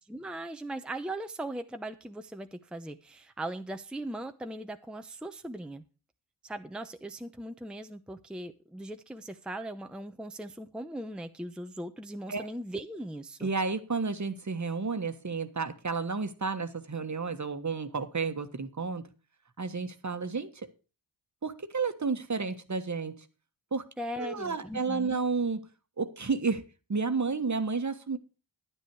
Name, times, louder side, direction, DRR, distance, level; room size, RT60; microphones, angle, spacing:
voice 1, 0.1-5.8 6.4-13.5 24.0-25.2, right 1 dB, ahead, 0.8 m, -39 dB
voice 2, 13.4-19.0 19.6-20.7 21.4-23.2 23.7-23.9 24.2-25.7 26.0-26.6 26.9-28.2, right 4 dB, 35° right, 1.4 m, -31 dB
10.0 x 9.8 x 4.7 m
cardioid pair, 55°, 47 cm